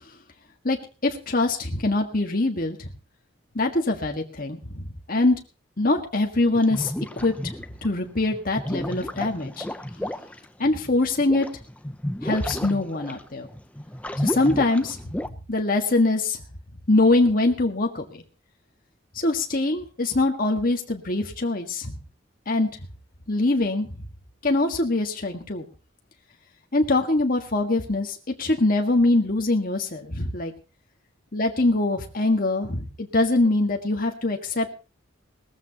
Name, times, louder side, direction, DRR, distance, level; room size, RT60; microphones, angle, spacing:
voice 1, 1.0-2.9 3.5-5.4 5.8-7.5 7.8-9.6 10.6-11.5 12.2-13.5 14.2-16.4 16.9-18.2 19.1-22.0 22.5-22.7 23.3-23.9 24.4-25.7 26.7-30.5 31.3-34.7, left 2 dB, 45° left, 2 dB, 1.7 m, -23 dB
sound 1, 6.5-7.9 8.3-15.3, left 1 dB, 5° left, 0.6 m, -32 dB
19.0 x 14.5 x 2.9 m, 0.33 s
head